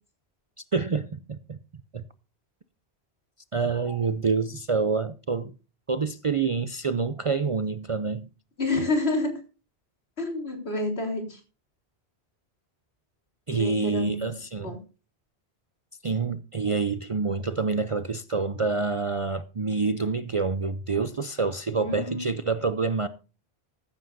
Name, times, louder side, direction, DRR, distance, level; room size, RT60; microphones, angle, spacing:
voice 1, 0.7-1.6 1.9-2.0 3.5-5.5 5.9-8.3 13.5-14.8 16.0-23.1, right 4 dB, 40° right, 0.5 m, -27 dB
voice 2, 8.6-9.3 10.2-11.4 13.5-14.3 14.6-14.8 21.8-22.3, left 2 dB, 70° left, 4.0 m, -28 dB
14.5 x 13.5 x 2.6 m
omnidirectional pair, 1.1 m